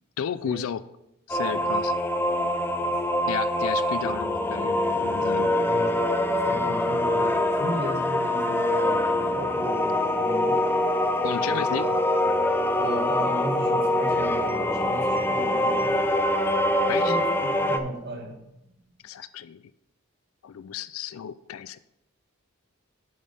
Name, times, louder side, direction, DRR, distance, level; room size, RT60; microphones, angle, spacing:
voice 1, 0.2-0.8 1.3-1.9 3.3-5.6 11.2-11.8 16.9-17.2 19.0-19.6 20.4-21.8, left 8 dB, 80° left, 15 dB, 0.4 m, -33 dB
sound 1, 1.3-17.8, left 1 dB, 10° left, 0.5 m, -24 dB
voice 2, 2.3-3.0 5.5-6.0 6.3-10.6 11.4-11.9 12.8-16.0 17.0-18.4 18.9-19.0, right 1 dB, 55° right, 1 dB, 1.8 m, -36 dB
8.5 x 5.4 x 5.5 m, 0.84 s
head